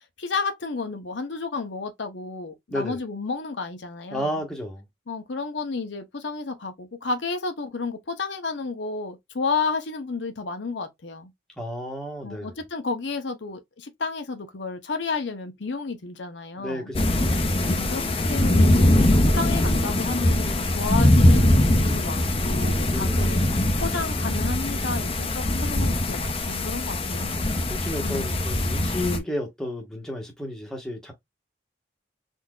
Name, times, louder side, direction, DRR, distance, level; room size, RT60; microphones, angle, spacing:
voice 1, 0.2-4.4 5.1-11.3 12.2-16.9 17.6-18.9 19.3-23.4 23.8-27.4 27.9-28.4, left 4 dB, 70° left, 0.8 m, -31 dB
voice 2, 2.7-3.0 4.1-4.9 11.6-12.5 16.6-17.1 22.9-23.2 27.1-31.1, left 1 dB, 5° left, 1.0 m, -32 dB
sound 1, 16.9-29.2, left 1 dB, 30° left, 0.6 m, -22 dB
3.8 x 2.7 x 2.3 m
head